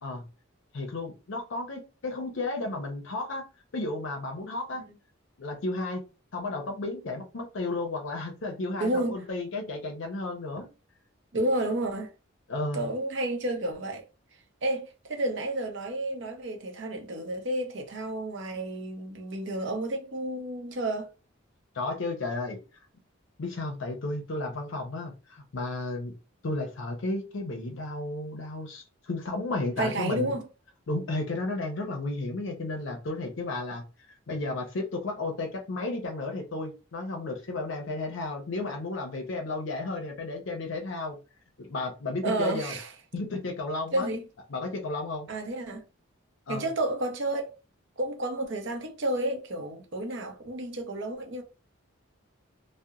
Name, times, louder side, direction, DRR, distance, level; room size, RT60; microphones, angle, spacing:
voice 1, 0.7-3.4 3.7-4.8 5.4-6.0 6.3-10.7 12.5-12.9 21.7-22.6 23.4-26.1 26.4-30.4 30.9-33.8 34.3-41.2 41.6-42.8 43.1-44.1 44.5-45.3 46.5-46.7, left 2 dB, 65° left, 0.5 m, -33 dB
voice 2, 8.8-9.2 11.3-12.1 12.7-14.0 14.6-21.1 29.8-30.4 42.2-42.9 43.9-44.2 45.3-45.8 46.5-47.4 48.0-51.4, right 1 dB, 60° right, 0.6 m, -31 dB
2.8 x 2.0 x 2.4 m
head